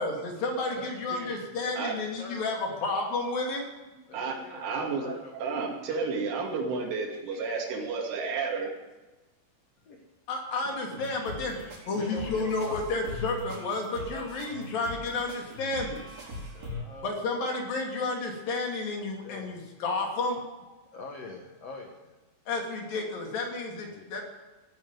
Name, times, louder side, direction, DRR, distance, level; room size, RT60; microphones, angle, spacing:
voice 1, 0.0-3.6 10.3-11.6 11.9-16.0 17.0-20.4 22.5-24.2, left 3 dB, 50° left, 1 dB, 4.2 m, -31 dB
voice 2, 0.7-1.7 2.2-3.0 4.1-5.9 7.1-7.2 9.8-10.0 10.9-11.1 11.9-13.1 13.8-14.7 16.5-17.1 19.2-19.6 20.7-22.1 23.8-24.2, left 3 dB, 90° left, 1 dB, 1.3 m, -45 dB
voice 3, 4.1-8.7, right 4 dB, 80° right, -1 dB, 5.0 m, -31 dB
sound 1, 10.9-16.8, left 1 dB, 35° right, 4.7 m, -41 dB
16.0 x 9.7 x 9.4 m, 1.1 s
omnidirectional pair, 5.5 m